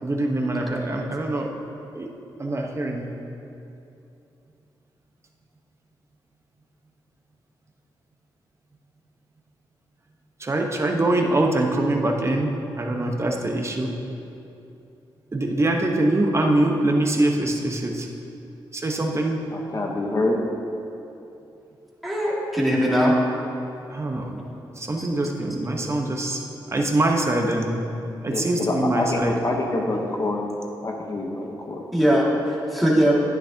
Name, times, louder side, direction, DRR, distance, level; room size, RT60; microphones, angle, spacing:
voice 1, 0.0-1.5 1.9-2.1 2.4-3.1 10.4-12.5 12.8-13.9 15.3-18.1 18.7-19.4 23.9-24.4 24.8-26.4 26.7-27.7 28.2-29.3, right 1 dB, 30° right, 1 dB, 1.1 m, -23 dB
voice 2, 19.5-20.4 28.3-30.5 30.8-31.8, left 2 dB, 40° left, 0 dB, 1.1 m, -26 dB
voice 3, 22.0-23.2 25.0-25.1 31.9-33.1, equal, ahead, -6 dB, 2.2 m, -20 dB
10.5 x 9.9 x 2.9 m, 2.8 s
cardioid pair, 70°, 9 cm